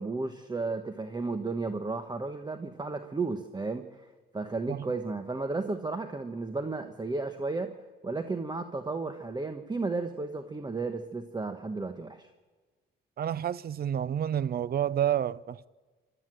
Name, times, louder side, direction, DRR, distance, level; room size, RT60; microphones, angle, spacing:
voice 1, 0.0-4.1 4.3-7.7 8.0-12.3, right 3 dB, 20° right, 1.2 m, -33 dB
voice 2, 13.2-15.7, right 10 dB, 50° right, 0.6 m, -29 dB
26.0 x 13.0 x 7.7 m
cardioid pair, 90°, 20 cm